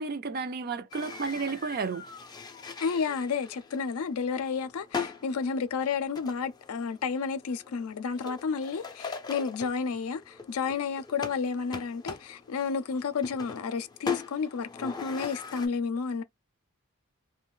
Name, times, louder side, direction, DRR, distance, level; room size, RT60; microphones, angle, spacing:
voice 1, 0.0-2.0, right 4 dB, 45° right, 0.4 m, -32 dB
sound 1, 0.9-15.7, left 5 dB, 20° left, 0.4 m, -41 dB
voice 2, 2.8-16.2, left 5 dB, 80° left, 0.4 m, -31 dB
2.4 x 2.2 x 3.7 m
head